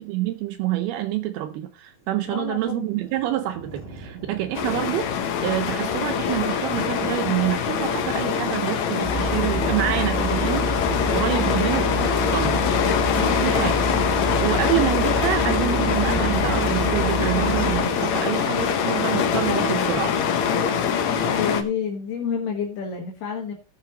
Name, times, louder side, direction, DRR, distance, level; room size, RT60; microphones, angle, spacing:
voice 1, 0.0-10.7 11.1-12.6 13.4-13.9 14.2-20.2, right 13 dB, 80° right, 2.4 m, -27 dB
sound 1, 1.9-19.6, right 3 dB, 55° right, 9.2 m, -42 dB
voice 2, 2.3-2.9 11.3-11.7 13.1-13.4 21.3-23.6, left 7 dB, 70° left, 3.3 m, -29 dB
sound 2, 4.5-21.6, left 7 dB, 90° left, 1.5 m, -24 dB
sound 3, 9.0-17.8, equal, 25° left, 4.4 m, -27 dB
18.5 x 7.2 x 2.9 m
omnidirectional pair, 5.0 m